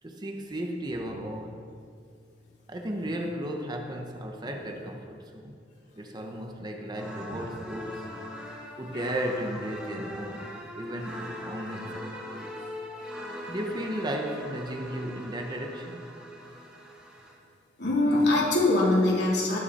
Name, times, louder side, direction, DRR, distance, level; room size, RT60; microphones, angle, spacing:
voice 1, 0.0-1.8 2.7-5.6 5.9-8.1 8.8-12.5 13.5-16.1, right 1 dB, 25° right, 3 dB, 1.1 m, -35 dB
sound 1, 6.9-17.4, equal, 5° right, 2.2 m, -41 dB
voice 2, 17.8-19.6, left 2 dB, 70° left, -5 dB, 3.7 m, -23 dB
19.0 x 8.4 x 4.4 m, 2.3 s
head